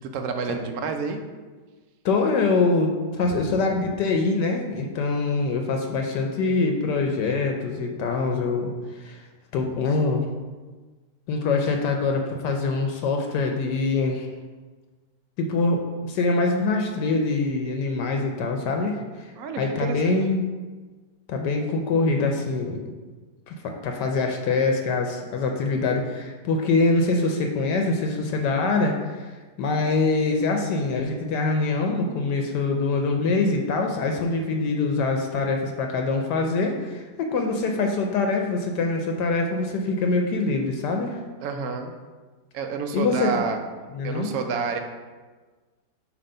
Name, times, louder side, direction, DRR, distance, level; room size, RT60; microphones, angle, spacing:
voice 1, 0.0-1.2 3.2-3.5 19.4-20.2 41.4-41.9 42.5-43.6 44.0-44.8, right 5 dB, 65° right, 5 dB, 1.0 m, -29 dB
voice 2, 2.0-9.2 9.5-10.3 11.3-14.3 15.4-19.3 19.6-20.4 21.3-22.8 23.5-29.2 29.6-41.2 42.9-43.3 43.9-44.3, left 3 dB, 75° left, 3 dB, 1.2 m, -24 dB
7.1 x 2.9 x 5.4 m, 1.4 s
omnidirectional pair, 1.9 m